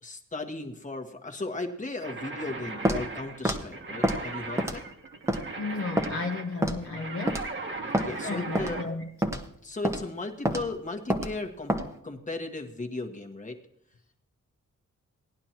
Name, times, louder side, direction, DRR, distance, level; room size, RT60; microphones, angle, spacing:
voice 1, 0.0-4.8 8.0-8.8 9.6-11.7 12.0-13.6, left 2 dB, 25° left, 4 dB, 1.4 m, -36 dB
sound 1, 2.0-8.9, right 3 dB, 40° right, 1.4 m, -38 dB
Walk footsteps, 2.9-3.0 3.5-3.6 4.0-4.2 4.6-4.9 5.3-5.4 6.0-6.1 6.6-6.8 7.3-7.5 7.9-8.1 8.6-8.7 9.2-9.4 9.8-10.0 10.5-10.6 11.1-11.3 11.7-11.9, right 1 dB, 10° right, 1.1 m, -26 dB
voice 2, 5.6-7.4 8.2-9.1, left 3 dB, 45° left, 1 dB, 0.9 m, -33 dB
17.5 x 11.0 x 2.9 m, 0.70 s
wide cardioid pair, 120°, 31 cm